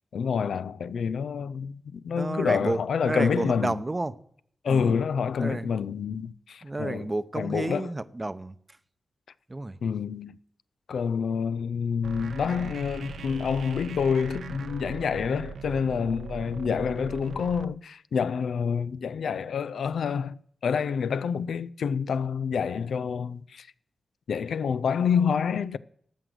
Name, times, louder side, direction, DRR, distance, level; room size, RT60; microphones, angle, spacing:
voice 1, 0.1-3.8 4.6-7.1 7.3-7.9 9.8-10.4 10.9-23.7 24.3-25.8, left 6 dB, 85° left, 0.4 m, -28 dB
voice 2, 2.1-4.1 4.7-5.0 5.4-5.7 6.6-8.5 9.5-9.8 11.2-11.3, right 2 dB, 30° right, 0.7 m, -31 dB
sound 1, 12.0-17.6, right 5 dB, 80° right, 0.5 m, -39 dB
13.0 x 6.2 x 7.8 m
cardioid pair, 50°, 0 cm